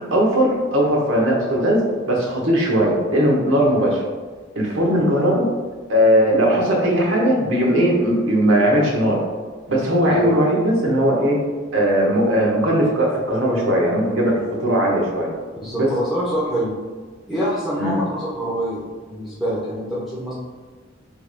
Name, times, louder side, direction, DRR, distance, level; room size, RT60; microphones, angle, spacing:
voice 1, 0.1-1.8 2.1-4.0 4.5-5.4 5.9-9.2 9.7-11.4 11.7-15.3 15.8-15.9 17.8-18.0, equal, 75° right, -2 dB, 1.3 m, -18 dB
Marimba xylophone, 7.7-9.4, right 8 dB, 25° left, 0.4 m, -29 dB
voice 2, 10.0-10.3 15.6-16.8 17.3-20.3, equal, ahead, -9 dB, 0.8 m, -25 dB
6.4 x 3.4 x 2.2 m, 1.4 s
head